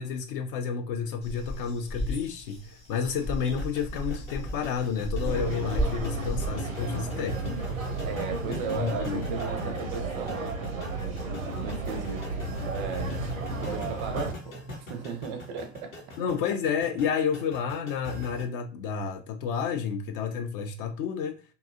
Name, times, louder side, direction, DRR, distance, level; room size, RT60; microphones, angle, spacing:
voice 1, 0.0-7.6 8.8-9.2 13.2-13.3 16.2-21.4, left 6 dB, 45° left, 0.4 m, -30 dB
sound 1, 1.2-6.5, equal, 15° left, 0.8 m, -34 dB
sound 2, 3.5-18.4, left 1 dB, 85° left, 0.8 m, -42 dB
sound 3, 5.2-14.3, right 3 dB, 90° right, 0.6 m, -33 dB
voice 2, 8.0-16.3, right 5 dB, 35° right, 0.4 m, -37 dB
2.7 x 2.3 x 2.4 m
figure-of-eight pair, 85°, 39 cm